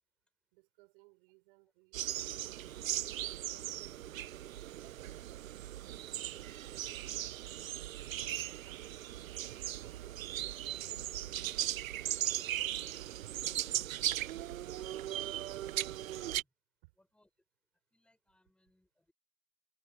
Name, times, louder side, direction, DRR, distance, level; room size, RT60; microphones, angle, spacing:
voice 1, 0.5-7.0 8.2-14.2 16.8-16.9, right 26 dB, 35° right, 5.8 m, -66 dB
sound 1, 1.9-16.4, right 13 dB, 55° right, 0.9 m, -38 dB
voice 2, 10.5-10.8 15.3-16.5 17.0-17.3 17.9-19.1, left 1 dB, ahead, 6.9 m, -72 dB
hypercardioid pair, 145°, 48 cm